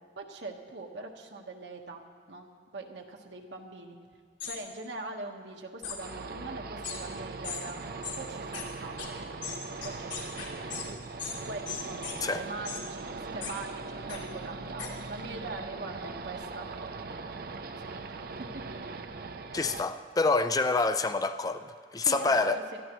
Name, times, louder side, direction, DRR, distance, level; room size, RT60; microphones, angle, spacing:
voice 1, 0.2-2.0 2.3-4.0 4.5-7.8 8.2-9.3 9.8-10.6 11.5-18.6 22.0-22.8, right 2 dB, 80° right, 2 dB, 1.4 m, -42 dB
sound 1, 4.4-4.6 5.8-6.0 6.8-7.0 7.4-7.6 8.0-8.2 8.5-8.6 9.0-9.1 9.4-10.8 11.2-11.4 11.7-12.2 12.6-12.8 13.4-13.5 14.1-14.2 14.8-14.9, left 7 dB, 90° left, 2.7 m, -37 dB
sound 2, 6.0-19.8, right 3 dB, 55° right, 0.6 m, -40 dB
voice 2, 19.5-22.6, left 3 dB, 20° left, 10 dB, 0.4 m, -27 dB
22.0 x 13.5 x 3.1 m, 2.2 s
head